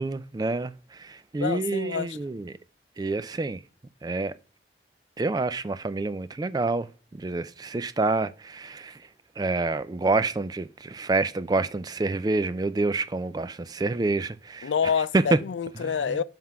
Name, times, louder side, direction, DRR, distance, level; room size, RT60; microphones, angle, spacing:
voice 1, 0.0-2.6 3.0-3.6 4.0-4.3 5.2-6.9 7.1-9.0 9.4-14.7 15.1-15.4 15.8-16.2, right 3 dB, 20° right, 0.3 m, -27 dB
voice 2, 1.4-2.2 14.6-16.2, left 6 dB, 85° left, 0.4 m, -27 dB
7.5 x 3.6 x 5.7 m
head